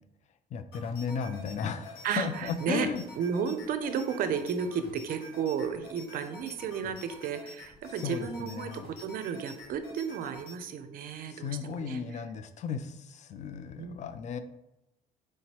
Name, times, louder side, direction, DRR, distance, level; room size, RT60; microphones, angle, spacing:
voice 1, 0.5-3.0 8.0-8.9 11.3-14.4, left 6 dB, 45° left, 11 dB, 0.4 m, -35 dB
sound 1, 0.7-10.6, left 1 dB, 65° left, 1.4 m, -48 dB
voice 2, 2.0-2.9 3.2-12.0 13.8-14.0, right 6 dB, 60° right, 10 dB, 0.5 m, -33 dB
4.6 x 3.0 x 2.9 m, 0.92 s
cardioid pair, 110°, 17 cm